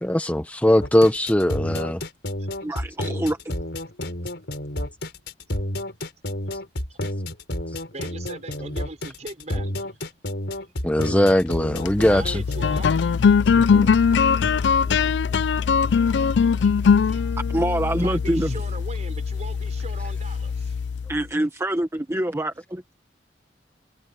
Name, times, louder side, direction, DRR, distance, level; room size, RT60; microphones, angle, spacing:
voice 1, 0.0-2.0 10.8-12.4 13.7-13.9 14.4-14.5, left 1 dB, 10° left, 0.7 m, -20 dB
sound 1, 0.8-12.8, left 1 dB, 70° left, 4.9 m, -30 dB
voice 2, 2.6-3.4 15.5-15.6 17.5-18.6 21.1-23.0, right 1 dB, 15° right, 1.1 m, -25 dB
voice 3, 7.9-10.0 12.1-12.9 14.0-14.5 16.1-16.7 17.0-17.2 18.0-20.8, right 2 dB, 40° right, 5.0 m, -40 dB
sound 2, 11.6-21.2, left 6 dB, 90° left, 0.4 m, -21 dB
sound 3, 14.1-17.7, left 1 dB, 35° left, 5.4 m, -47 dB
head